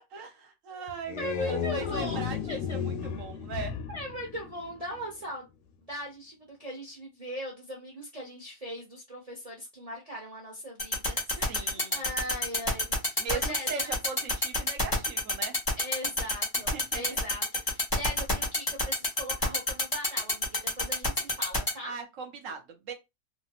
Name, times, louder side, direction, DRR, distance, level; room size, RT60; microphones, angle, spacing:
voice 1, 0.0-3.7 11.3-12.1 13.2-15.5 16.5-17.0 21.8-22.9, right 5 dB, 65° right, 1.0 m, -39 dB
sound 1, 0.9-5.1, left 7 dB, 70° left, 0.9 m, -34 dB
voice 2, 1.2-2.2 2.5-2.8 3.9-5.5 5.9-13.9 15.8-21.9, equal, 35° right, 0.6 m, -39 dB
sound 2, 10.8-21.7, left 1 dB, 20° left, 0.7 m, -26 dB
2.9 x 2.1 x 2.8 m
omnidirectional pair, 1.7 m